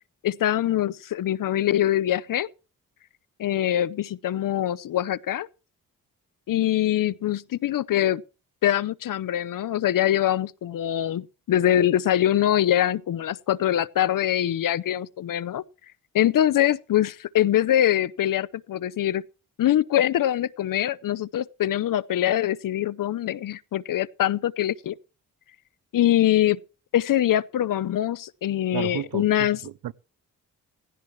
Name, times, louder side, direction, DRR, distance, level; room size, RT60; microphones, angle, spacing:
voice 1, 0.2-2.5 3.4-5.5 6.5-8.2 8.6-15.6 16.1-19.2 19.6-25.0 25.9-26.6 26.9-29.6, left 12 dB, 70° left, 0.7 m, -23 dB
voice 2, 28.7-29.9, right 11 dB, 85° right, 0.7 m, -33 dB
16.5 x 15.0 x 3.1 m
cardioid pair, 65°, 35 cm